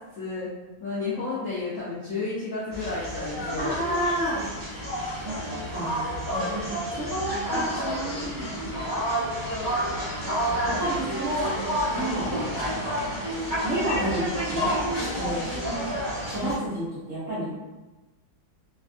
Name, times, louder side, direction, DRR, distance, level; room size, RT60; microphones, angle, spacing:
voice 1, 0.1-0.5 0.8-3.8 7.5-7.6 15.5-16.0, left 3 dB, 75° left, -8 dB, 0.7 m, -32 dB
sound 1, 2.7-16.5, equal, 20° right, 0.5 m, -30 dB
voice 2, 3.6-4.5 5.2-5.4 5.7-8.5 10.6-11.5 11.9-12.4 13.6-14.7 15.2-15.5 16.3-17.5, right 1 dB, 55° right, -10 dB, 0.9 m, -30 dB
3.3 x 2.3 x 2.4 m, 1.1 s
omnidirectional pair, 2.2 m